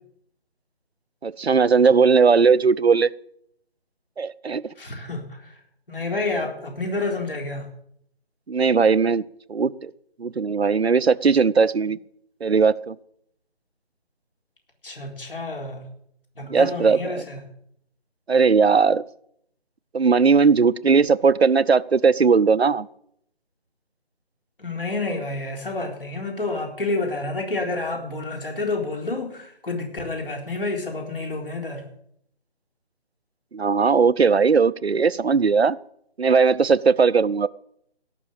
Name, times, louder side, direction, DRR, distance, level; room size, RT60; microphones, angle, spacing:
voice 1, 1.2-3.1 4.2-4.6 8.5-9.2 9.5-9.9 10.2-12.0 12.4-12.9 16.5-17.2 18.3-19.0 19.9-22.9 33.5-35.8 36.2-37.5, right 5 dB, 80° right, 17 dB, 0.7 m, -18 dB
voice 2, 4.8-5.6 5.9-7.7 14.8-15.8 16.4-17.4 24.6-31.8, left 2 dB, 60° left, 3 dB, 4.1 m, -29 dB
17.0 x 6.2 x 8.8 m, 0.70 s
figure-of-eight pair, 155°, 31 cm